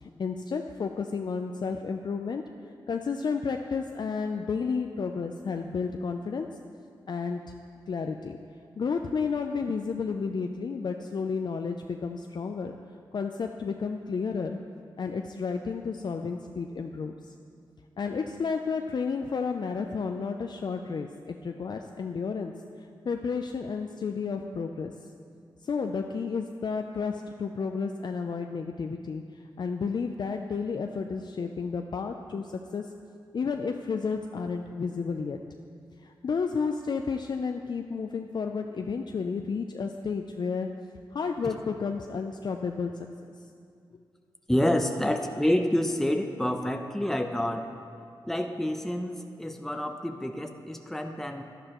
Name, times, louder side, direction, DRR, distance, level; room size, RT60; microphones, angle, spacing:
voice 1, 0.0-2.4 2.9-6.5 7.1-7.5 7.9-8.4 8.8-12.8 13.1-14.6 15.0-17.1 18.0-22.5 23.1-24.9 25.6-32.9 33.3-35.4 36.0-40.7 41.1-42.9, left 5 dB, 55° left, 4 dB, 0.4 m, -31 dB
voice 2, 44.5-47.7 48.2-51.4, left 1 dB, 5° left, 5 dB, 0.6 m, -28 dB
11.5 x 11.0 x 3.0 m, 2.3 s
cardioid pair, 65°, 9 cm